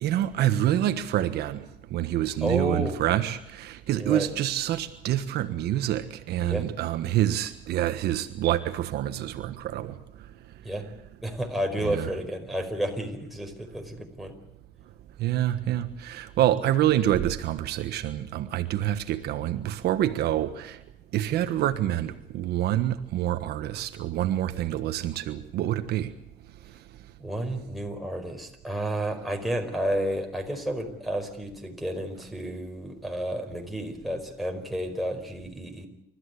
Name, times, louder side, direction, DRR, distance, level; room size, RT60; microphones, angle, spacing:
voice 1, 0.0-1.6 1.9-9.9 11.9-12.0 15.2-20.8 21.1-26.1, right 12 dB, 75° right, 1.4 m, -27 dB
voice 2, 2.4-3.0 4.0-4.3 6.4-6.7 10.6-10.9 11.2-14.3 27.2-35.9, right 1 dB, ahead, 4.8 m, -31 dB
29.0 x 14.0 x 8.3 m
cardioid pair, 110°, 17 cm